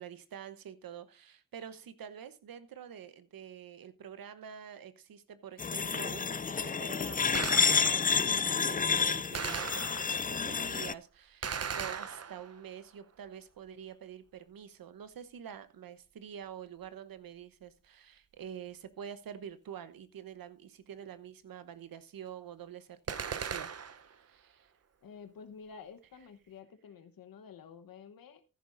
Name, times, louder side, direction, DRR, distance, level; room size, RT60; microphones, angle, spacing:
voice 1, 0.0-24.7, right 8 dB, 75° right, 1.0 m, -47 dB
sound 1, 5.6-10.9, left 5 dB, 25° left, 0.5 m, -29 dB
Gunshot gunfire, 7.3-8.2 9.3-10.3 11.4-12.7 23.1-24.1, right 6 dB, 45° right, 0.8 m, -38 dB
voice 2, 25.0-28.4, left 6 dB, 75° left, 1.1 m, -50 dB
15.0 x 10.5 x 2.6 m
cardioid pair, 45°, 35 cm